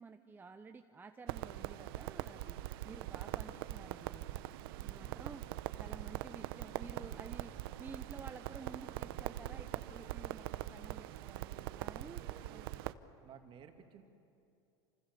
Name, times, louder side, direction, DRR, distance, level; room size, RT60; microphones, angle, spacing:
voice 1, 0.0-2.6 2.8-4.4 4.7-5.4 5.8-7.5 7.8-12.2 12.5-12.7, right 4 dB, 15° right, 6 dB, 0.9 m, -52 dB
Crackle, 1.3-12.9, right 15 dB, 80° right, 0.9 m, -42 dB
voice 2, 4.7-5.1 11.9-12.7 13.2-14.0, right 8 dB, 45° right, 5 dB, 2.7 m, -57 dB
28.5 x 27.0 x 7.0 m, 2.7 s
supercardioid pair, 120°, 12 cm